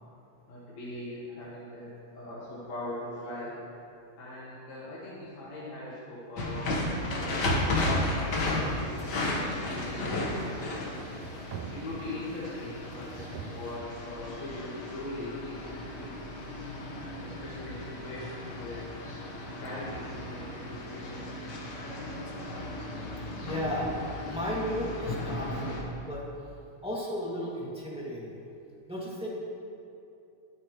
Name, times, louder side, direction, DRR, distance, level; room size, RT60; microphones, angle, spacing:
voice 1, 0.5-3.5 4.2-10.9 11.7-16.2 16.9-18.9 19.6-21.5, left 1 dB, 70° left, -9 dB, 3.0 m, -41 dB
sound 1, 6.4-25.8, left 1 dB, 45° left, 1.5 m, -34 dB
sound 2, 8.2-13.8, right 7 dB, 75° right, 1.8 m, -47 dB
voice 2, 23.4-23.9 24.2-26.2 26.8-28.4 28.9-29.3, equal, ahead, -6 dB, 1.6 m, -34 dB
21.0 x 8.7 x 3.1 m, 2.7 s
omnidirectional pair, 3.3 m